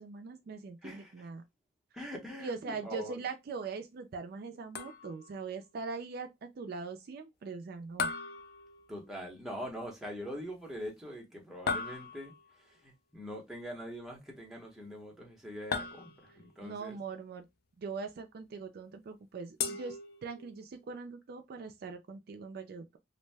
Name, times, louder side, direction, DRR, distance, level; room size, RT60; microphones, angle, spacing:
voice 1, 0.0-1.4 2.4-6.3 6.6-8.1 16.6-17.5 17.8-23.0, right 4 dB, 55° right, 0.3 m, -41 dB
voice 2, 0.8-1.3 1.9-3.2 8.9-17.0, equal, ahead, 0.8 m, -43 dB
sound 1, 4.7-5.4 8.0-9.2 11.7-12.5 15.7-16.5 19.6-20.6, left 5 dB, 55° left, 0.4 m, -37 dB
2.6 x 2.1 x 3.2 m
head